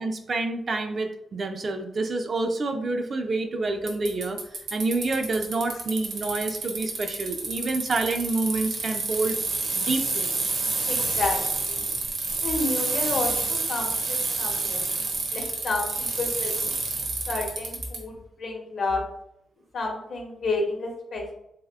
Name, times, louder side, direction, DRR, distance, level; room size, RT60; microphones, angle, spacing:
voice 1, 0.0-9.4 9.8-10.5, right 3 dB, 40° right, 6 dB, 0.3 m, -28 dB
Bicycle, 3.9-18.0, right 3 dB, 80° right, 0.8 m, -28 dB
voice 2, 10.9-11.9 12.4-14.8 15.3-16.7 17.3-19.0 19.7-21.3, left 3 dB, 55° left, 1 dB, 0.8 m, -30 dB
3.4 x 3.3 x 2.3 m, 0.78 s
wide cardioid pair, 160°, 0 cm